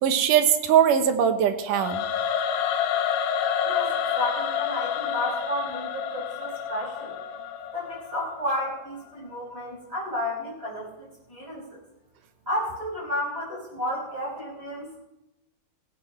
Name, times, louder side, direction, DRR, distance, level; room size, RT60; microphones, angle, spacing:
voice 1, 0.0-2.0, right 8 dB, 80° right, 8 dB, 2.6 m, -21 dB
Singing / Musical instrument, 1.7-8.8, left 8 dB, 80° left, 2.4 m, -29 dB
voice 2, 3.6-7.2 7.7-11.8 12.5-15.0, left 1 dB, 15° right, -5 dB, 5.2 m, -32 dB
17.5 x 16.0 x 3.2 m, 0.93 s
omnidirectional pair, 3.7 m